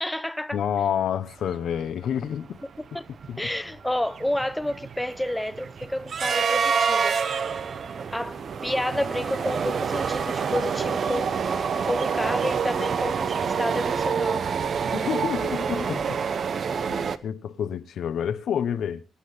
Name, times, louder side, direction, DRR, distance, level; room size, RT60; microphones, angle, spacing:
voice 1, 0.0-0.6 2.9-3.0 3.4-7.2 8.1-11.3 11.8-14.5, left 1 dB, 5° left, 0.7 m, -30 dB
voice 2, 0.5-2.6 3.3-3.4 14.9-16.2 16.9-19.0, left 9 dB, 70° left, 0.9 m, -28 dB
sound 1, 1.8-1.9 2.1-2.4 2.8-17.2, right 6 dB, 50° right, 0.8 m, -27 dB
24.0 x 10.0 x 3.3 m
cardioid pair, 120°, 0 cm